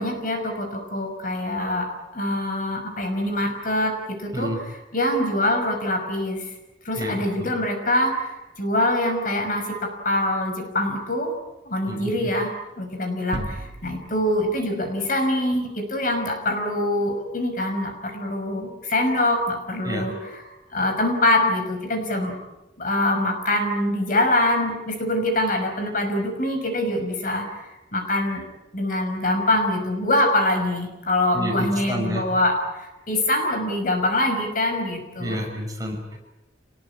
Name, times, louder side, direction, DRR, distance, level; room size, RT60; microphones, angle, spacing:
voice 1, 0.0-6.5 6.8-11.3 11.6-12.5 12.8-22.3 22.8-28.5 28.7-35.4, left 1 dB, 50° left, 5 dB, 5.8 m, -24 dB
voice 2, 7.0-7.5 11.9-12.3 19.8-20.1 31.3-32.2 35.2-36.2, equal, 20° right, 1 dB, 6.2 m, -30 dB
sound 1, 13.3-15.4, right 1 dB, 70° right, 2.0 m, -36 dB
27.5 x 20.0 x 8.7 m, 1.0 s
head